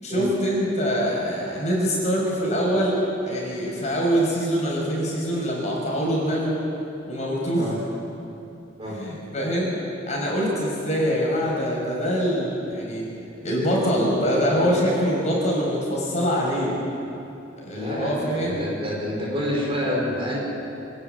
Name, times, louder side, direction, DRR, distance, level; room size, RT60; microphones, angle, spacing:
voice 1, 0.0-6.6 7.1-7.7 8.9-9.7 10.1-13.1 13.4-16.8 17.6-18.7, equal, 35° left, -4 dB, 6.0 m, -24 dB
voice 2, 17.7-20.4, equal, 30° right, -3 dB, 4.9 m, -28 dB
25.5 x 11.5 x 9.3 m, 2.8 s
head